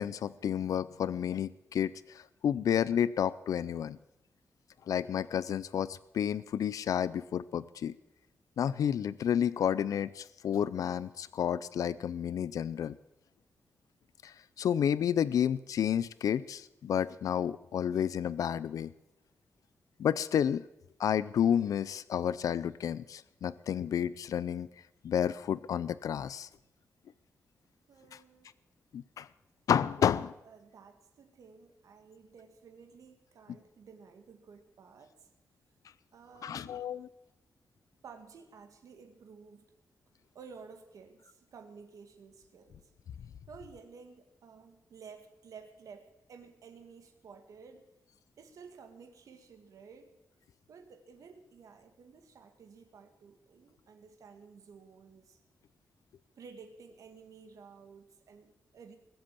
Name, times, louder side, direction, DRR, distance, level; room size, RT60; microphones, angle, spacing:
voice 1, 0.0-4.0 4.9-8.0 8.6-13.0 14.2-18.9 20.0-20.6 21.0-24.7 25.0-26.5 28.9-29.3 29.7-30.3 36.4-37.1, left 9 dB, 90° left, 17 dB, 0.5 m, -30 dB
voice 2, 27.9-28.5 30.0-30.1 30.4-35.3 36.1-36.7 38.0-39.7 40.3-42.9 43.5-47.8 48.4-50.1 50.7-55.4 56.4-59.0, right 5 dB, 80° right, 6 dB, 2.0 m, -53 dB
20.5 x 8.0 x 8.5 m, 0.88 s
wide cardioid pair, 160°, 6 cm